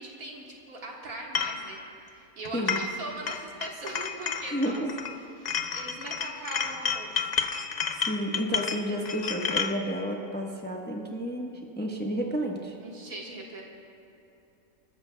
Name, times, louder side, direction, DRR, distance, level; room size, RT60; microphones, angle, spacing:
voice 1, 0.0-4.8 5.4-7.2 12.8-13.6, right 2 dB, 80° right, -2 dB, 2.1 m, -40 dB
sound 1, 1.4-1.6 2.5-3.0 3.3-5.1 5.5-9.8, left 6 dB, 50° left, 0.5 m, -31 dB
voice 2, 4.5-4.9 8.1-12.8, equal, 10° left, -1 dB, 1.0 m, -31 dB
27.0 x 13.5 x 2.3 m, 2.7 s
omnidirectional pair, 1.5 m